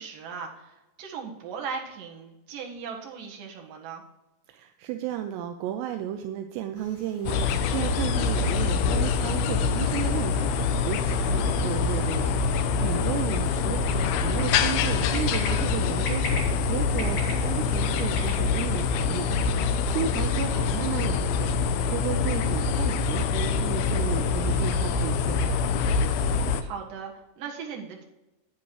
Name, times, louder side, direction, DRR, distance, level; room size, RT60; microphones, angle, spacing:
voice 1, 0.0-4.0 11.2-11.6 19.5-20.0 26.6-28.0, right 6 dB, 60° right, 0 dB, 2.8 m, -38 dB
voice 2, 4.5-25.6, right 10 dB, 80° right, 6 dB, 2.6 m, -34 dB
sound 1, 6.7-18.4, left 2 dB, 55° left, 3.3 m, -43 dB
sound 2, 7.3-26.6, left 5 dB, 80° left, 2.3 m, -25 dB
10.5 x 9.5 x 3.2 m, 1.0 s
omnidirectional pair, 5.1 m